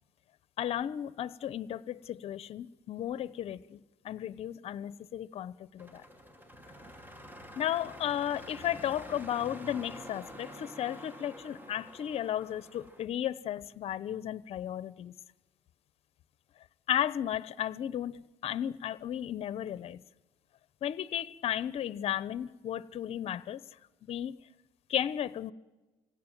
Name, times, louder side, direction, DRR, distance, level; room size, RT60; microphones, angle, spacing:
voice 1, 0.6-6.0 7.5-15.1 16.9-20.0 20.8-23.6 24.0-24.4 24.9-25.5, left 11 dB, 55° left, 0.9 m, -34 dB
sound 1, 5.8-13.1, equal, 15° right, 2.2 m, -48 dB
25.5 x 17.0 x 9.3 m
cardioid pair, 115°, 12 cm